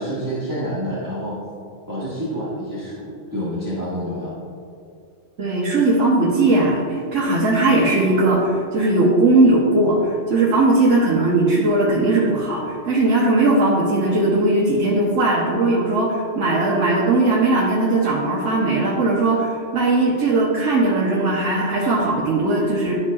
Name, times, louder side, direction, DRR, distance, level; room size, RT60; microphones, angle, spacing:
voice 1, 0.0-1.4 1.9-4.3, equal, 15° right, -10 dB, 1.4 m, -28 dB
voice 2, 5.4-23.0, right 2 dB, 85° right, -6 dB, 1.4 m, -18 dB
12.0 x 5.6 x 2.4 m, 2.3 s
omnidirectional pair, 1.3 m